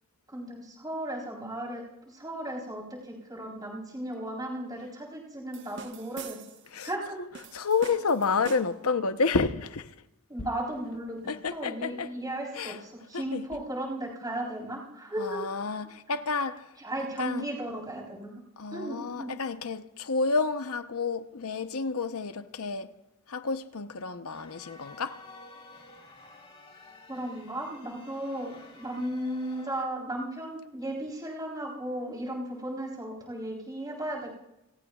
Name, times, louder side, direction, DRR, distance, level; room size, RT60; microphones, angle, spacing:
voice 1, 0.3-6.4 6.8-7.2 10.3-11.2 11.5-15.4 16.8-18.3 18.7-19.3 27.1-34.4, right 1 dB, 15° right, 3.9 m, -35 dB
sound 1, 5.5-6.7 7.3-8.9, right 5 dB, 55° right, 1.2 m, -44 dB
voice 2, 7.5-9.9 11.3-12.1 12.6-12.8 13.1-13.5 15.2-16.7 17.2-17.4 18.6-22.9 23.3-25.2, left 4 dB, 80° left, 0.9 m, -30 dB
sound 2, 24.3-29.8, left 2 dB, 25° left, 4.4 m, -51 dB
29.5 x 17.5 x 2.4 m
head